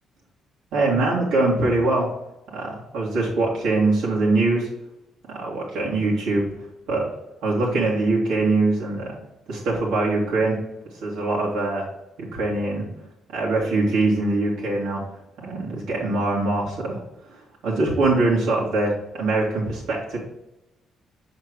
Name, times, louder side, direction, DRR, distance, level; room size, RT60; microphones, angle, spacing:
voice 1, 0.7-2.1 2.5-4.7 5.3-6.5 6.9-7.1 7.4-9.2 9.5-10.6 10.9-11.9 12.3-12.9 13.3-15.0 15.4-17.0 17.3-20.2, right 2 dB, 85° right, -5 dB, 2.6 m, -23 dB
6.1 x 4.3 x 4.9 m, 0.89 s
cardioid pair, 90°, 0 cm